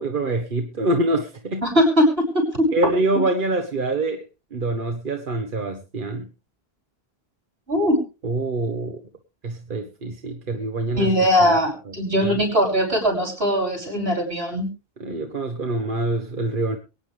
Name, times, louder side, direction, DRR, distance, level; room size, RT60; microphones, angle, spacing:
voice 1, 0.0-1.6 2.7-4.2 4.5-6.3 8.2-9.0 9.4-11.1 11.4-11.6 12.2-12.4 15.0-16.8, right 2 dB, 55° right, 5 dB, 1.4 m, -25 dB
voice 2, 1.6-2.7 7.7-8.0 11.0-14.7, equal, 75° right, 4 dB, 5.9 m, -20 dB
23.0 x 9.2 x 3.3 m, 0.30 s
omnidirectional pair, 1.0 m